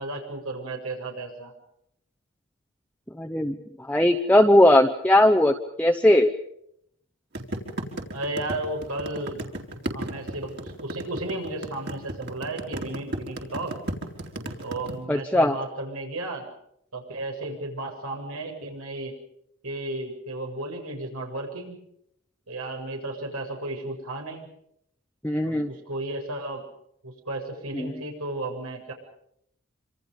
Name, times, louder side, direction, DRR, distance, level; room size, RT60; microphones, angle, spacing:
voice 1, 0.0-1.5 8.1-9.4 9.9-13.7 14.6-16.5 16.9-19.1 19.6-21.8 22.5-24.5 25.4-26.6 27.0-28.9, right 2 dB, 90° right, 3 dB, 7.5 m, -34 dB
voice 2, 3.2-3.6 3.9-6.3 15.1-15.5 25.2-25.7 27.7-27.9, left 1 dB, 5° left, 2 dB, 0.9 m, -19 dB
sound 1, 7.4-14.9, right 1 dB, 50° right, 4.3 m, -33 dB
27.0 x 27.0 x 5.5 m, 0.75 s
head